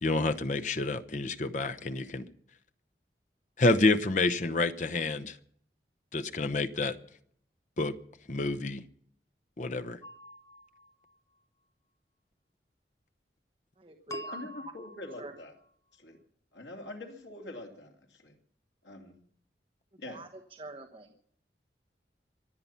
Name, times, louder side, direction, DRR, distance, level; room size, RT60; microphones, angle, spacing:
voice 1, 0.0-2.3 3.6-5.4 6.1-7.0 7.8-7.9 8.3-8.8 9.6-10.0, left 2 dB, 45° left, 0.9 m, -28 dB
sound 1, 10.0-11.1 14.1-15.5, equal, 15° left, 0.5 m, -45 dB
voice 2, 13.8-14.5 15.2-15.3 20.0-20.3 20.6-21.2, right 2 dB, 30° right, 1.2 m, -44 dB
voice 3, 14.3-15.6 15.9-16.2 16.5-18.3 18.8-19.1 20.0-20.3, left 2 dB, 85° left, 2.9 m, -44 dB
24.5 x 8.8 x 5.7 m
head